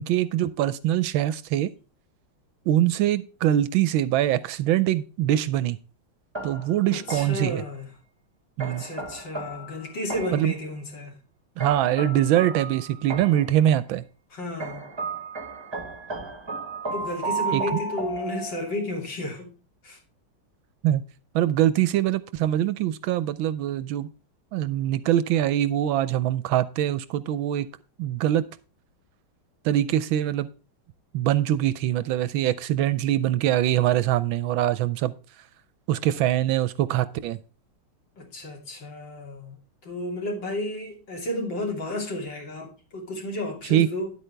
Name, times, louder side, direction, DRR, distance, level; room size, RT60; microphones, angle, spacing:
voice 1, 0.0-1.7 2.7-5.8 6.4-7.6 8.6-8.8 10.3-10.5 11.6-14.0 17.5-17.8 20.8-21.0 21.3-24.1 24.5-27.7 28.0-28.5 29.6-30.5 31.1-35.5 35.9-37.4 43.7-43.9, right 12 dB, 75° right, 1.3 m, -23 dB
sound 1, 6.3-7.6 8.6-10.6 11.6-13.6 14.6-18.9, right 3 dB, 15° right, 1.0 m, -34 dB
voice 2, 6.9-7.9 8.6-11.2 14.3-14.9 16.9-19.5 19.8-20.0 38.2-39.6 39.8-44.1, left 1 dB, 60° left, 3.5 m, -32 dB
10.5 x 8.4 x 3.3 m
omnidirectional pair, 2.3 m